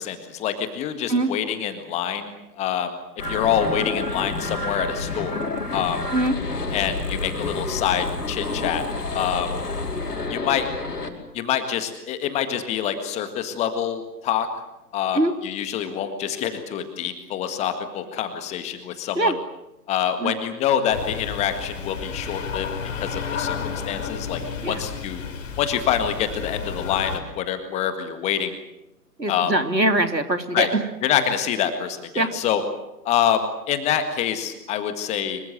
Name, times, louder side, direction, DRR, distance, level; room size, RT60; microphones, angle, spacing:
voice 1, 0.0-2.9 3.3-5.4 5.7-6.0 6.7-8.9 9.1-9.5 10.3-10.7 11.3-14.5 14.9-19.3 19.9-22.7 23.0-24.4 24.7-25.2 25.6-28.5 29.3-29.5 30.5-30.7 31.0-32.6 33.1-35.4, left 9 dB, 15° left, 8 dB, 1.7 m, -26 dB
sound 1, 3.2-11.1, left 3 dB, 70° left, 5.2 m, -29 dB
sound 2, 20.9-27.2, left 6 dB, 45° left, 4.6 m, -32 dB
voice 2, 29.2-30.8 32.1-32.3, right 2 dB, 85° right, 7 dB, 3.2 m, -22 dB
25.5 x 24.0 x 7.8 m, 0.91 s
figure-of-eight pair, 130°, 50 cm